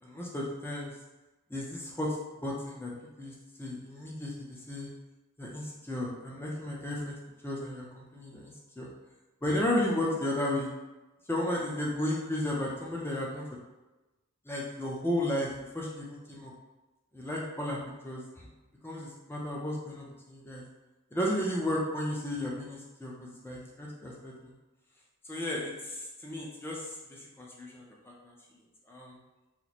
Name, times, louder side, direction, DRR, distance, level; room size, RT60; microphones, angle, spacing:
voice 1, 0.0-0.9 1.5-2.2 2.4-2.9 3.2-4.9 5.4-7.2 7.4-8.9 9.4-10.7 11.3-13.4 14.5-16.5 17.1-17.8 18.0-18.2 18.8-20.6 21.1-24.5 25.2-28.3 28.9-29.2, left 1 dB, 10° left, -4 dB, 0.5 m, -34 dB
3.0 x 2.1 x 4.0 m, 1.1 s
head